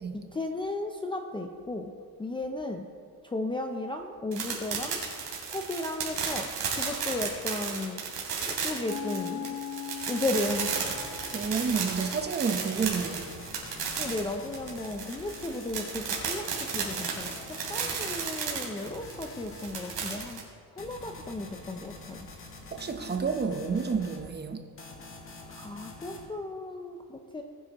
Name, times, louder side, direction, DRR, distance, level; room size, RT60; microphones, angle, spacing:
voice 1, 0.1-2.9 3.2-5.0 5.4-8.1 8.5-9.6 10.1-11.0 14.0-20.4 20.7-22.3 25.5-27.4, left 2 dB, 15° left, 3 dB, 0.4 m, -35 dB
sound 1, 4.3-20.4, right 6 dB, 75° right, 3.1 m, -33 dB
sound 2, 8.9-13.1, left 8 dB, 60° left, 1.0 m, -41 dB
sound 3, 10.8-12.3 12.8-16.3 16.8-18.3 18.8-20.3 20.8-24.3 24.8-26.3, left 2 dB, 35° left, 1.7 m, -46 dB
voice 2, 11.3-13.5 22.7-24.6, right 5 dB, 25° right, 6 dB, 0.8 m, -30 dB
19.5 x 9.5 x 3.0 m, 2.1 s
cardioid pair, 160°, 38 cm